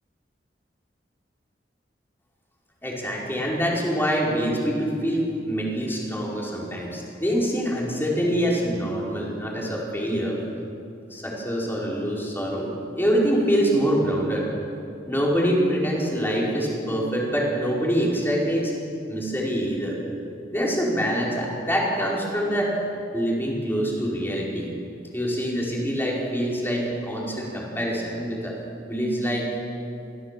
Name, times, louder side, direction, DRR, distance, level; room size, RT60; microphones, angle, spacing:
voice 1, 2.8-10.4 11.1-14.5 15.0-18.7 19.1-20.0 20.5-22.7 23.1-24.7 25.1-28.6 28.8-29.6, equal, 15° left, -4 dB, 4.9 m, -25 dB
24.5 x 16.5 x 7.6 m, 2.5 s
head